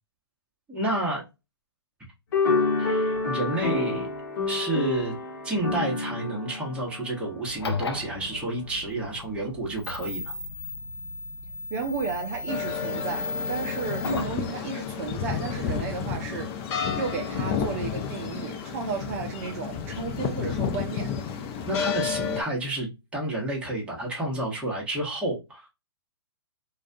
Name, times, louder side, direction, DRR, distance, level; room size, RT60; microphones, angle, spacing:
voice 1, 0.7-1.2 2.8-4.1 4.5-5.1 5.4-10.3 21.6-25.6, right 1 dB, 10° right, 1.0 m, -30 dB
sound 1, 2.3-7.9, left 3 dB, 55° left, 0.9 m, -28 dB
sound 2, 7.5-14.4, left 3 dB, 85° left, 0.5 m, -35 dB
voice 2, 11.7-16.5 17.0-21.1, right 5 dB, 40° right, 0.4 m, -33 dB
sound 3, 12.5-22.4, left 7 dB, 35° left, 0.5 m, -31 dB
2.3 x 2.2 x 2.5 m
hypercardioid pair, 125°, 13 cm